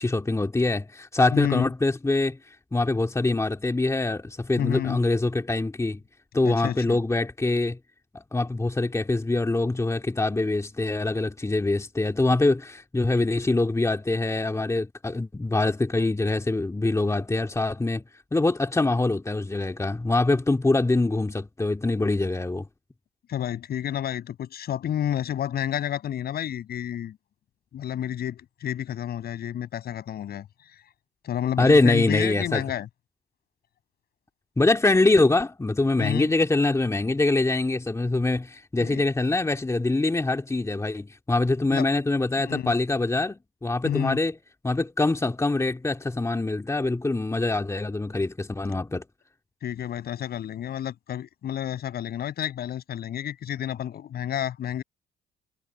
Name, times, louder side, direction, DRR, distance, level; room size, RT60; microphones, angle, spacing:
voice 1, 0.0-6.0 6.3-7.8 8.1-18.0 18.3-22.7 31.6-32.7 34.6-44.3 44.6-49.0, left 2 dB, 15° left, 2.2 m, -24 dB
voice 2, 1.3-1.7 4.6-5.0 6.4-7.0 23.3-27.2 27.7-30.5 31.2-32.9 36.0-36.3 38.8-39.0 41.7-41.9 42.4-42.7 43.8-44.2 49.6-54.8, left 10 dB, 65° left, 7.7 m, -30 dB
supercardioid pair, 60°, 18 cm